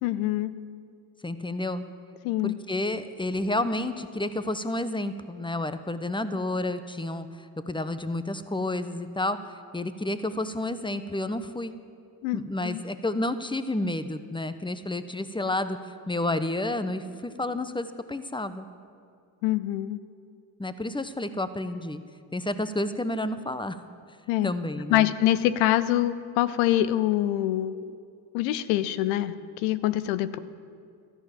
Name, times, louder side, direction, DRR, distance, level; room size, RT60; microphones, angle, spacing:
voice 1, 0.0-0.5 2.2-2.6 12.2-12.8 19.4-20.0 24.3-24.5 24.9-27.7 28.3-30.4, left 13 dB, 90° left, 15 dB, 0.7 m, -25 dB
voice 2, 1.2-1.8 2.4-11.7 12.3-18.6 20.6-22.0 22.3-23.8 24.4-25.1, left 1 dB, 10° left, 11 dB, 1.1 m, -30 dB
13.5 x 11.0 x 7.4 m, 2.4 s
hypercardioid pair, 45°, 50 cm